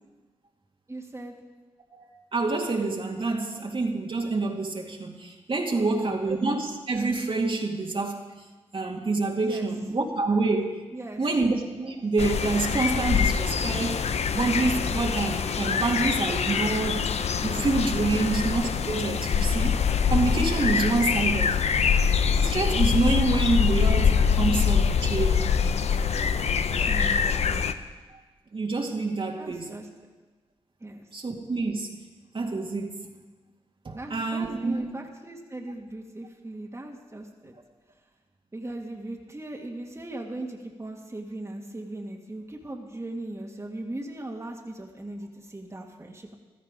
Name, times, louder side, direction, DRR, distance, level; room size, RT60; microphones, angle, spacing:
voice 1, 0.9-1.3 5.7-6.4 9.4-9.7 10.9-11.3 18.1-18.4 26.9-27.6 29.4-30.1 30.8-31.1 33.9-37.5 38.5-46.3, right 1 dB, 25° right, 1 dB, 1.9 m, -38 dB
voice 2, 1.9-8.3 8.7-10.8 11.2-14.0 14.3-17.2 17.4-19.8 20.1-21.6 22.4-25.5 28.5-29.7 31.1-31.9 32.3-33.0 33.8-34.9, right 3 dB, 50° right, 1 dB, 2.1 m, -27 dB
sound 1, 12.2-27.7, left 6 dB, 70° left, 0.7 m, -24 dB
15.5 x 12.5 x 5.1 m, 1.3 s
supercardioid pair, 45°, 11 cm